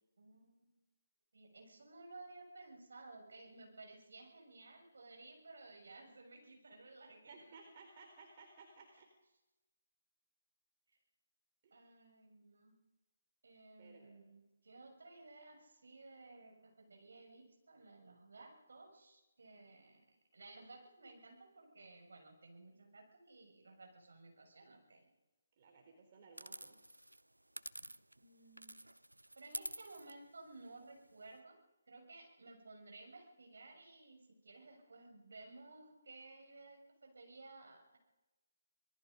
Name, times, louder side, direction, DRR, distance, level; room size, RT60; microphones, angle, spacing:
voice 1, 0.2-0.8 1.3-7.5 8.9-9.0 11.7-12.8 13.4-20.0 20.3-25.0 28.2-28.8 29.4-31.6 31.9-38.0, right 2 dB, 60° right, 2 dB, 6.8 m, -57 dB
voice 2, 7.3-9.1 11.6-11.9 13.8-14.1 25.6-26.8, right 4 dB, 35° right, 2 dB, 3.9 m, -59 dB
sound 1, 26.4-28.3 28.6-31.4, right 1 dB, 85° right, 0.8 m, -49 dB
25.5 x 20.5 x 5.3 m, 1.1 s
figure-of-eight pair, 145°, 0 cm